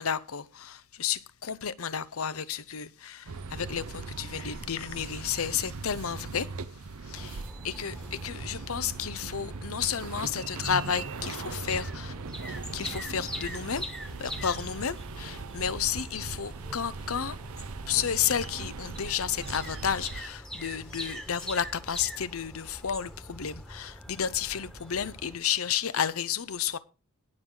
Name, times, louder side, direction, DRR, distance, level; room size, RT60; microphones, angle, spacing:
voice 1, 0.0-6.5 7.1-12.1 12.5-13.9 14.2-17.4 17.9-26.8, left 8 dB, 75° left, 0.8 m, -32 dB
sound 1, 3.3-20.2, right 4 dB, 85° right, 0.7 m, -40 dB
sound 2, 7.1-25.4, equal, 5° left, 1.4 m, -43 dB
18.5 x 6.4 x 3.9 m
head